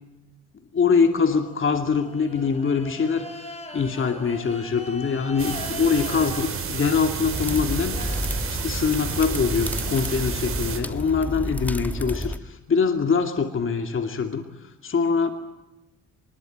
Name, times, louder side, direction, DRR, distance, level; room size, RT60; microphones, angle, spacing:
voice 1, 0.7-8.2 8.5-15.3, left 5 dB, 40° left, 5 dB, 2.5 m, -24 dB
sound 1, 1.1-8.9 9.3-11.9, left 1 dB, 20° left, 5.9 m, -42 dB
sound 2, 5.4-10.8, right 6 dB, 45° right, 4.7 m, -31 dB
sound 3, 7.3-12.4, left 1 dB, 5° left, 1.4 m, -31 dB
25.0 x 21.0 x 9.3 m, 1.1 s
cardioid pair, 90°, 30 cm